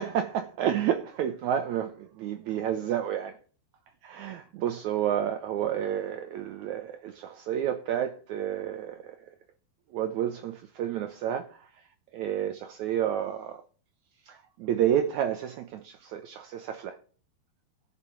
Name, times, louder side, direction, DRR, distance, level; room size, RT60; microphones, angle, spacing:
voice 1, 0.0-3.4 4.0-9.3 9.9-13.6 14.3-17.0, right 10 dB, 85° right, 1.7 m, -30 dB
18.5 x 6.8 x 5.0 m
omnidirectional pair, 4.3 m